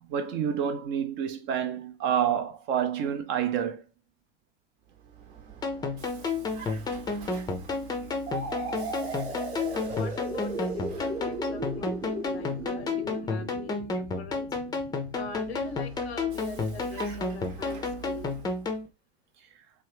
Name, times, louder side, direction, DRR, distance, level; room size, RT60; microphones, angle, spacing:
voice 1, 0.0-3.8, right 8 dB, 35° right, 0.6 m, -28 dB
Vehicle, 4.8-13.3 15.0-18.9, right 7 dB, 55° right, 1.0 m, -46 dB
sound 1, 5.6-18.9, left 3 dB, 10° left, 0.6 m, -32 dB
sound 2, 8.3-15.9, right 2 dB, 85° right, 1.2 m, -37 dB
voice 2, 9.8-14.5 15.1-18.3, left 5 dB, 75° left, 0.7 m, -42 dB
3.1 x 2.2 x 3.3 m
figure-of-eight pair, 85°, 32 cm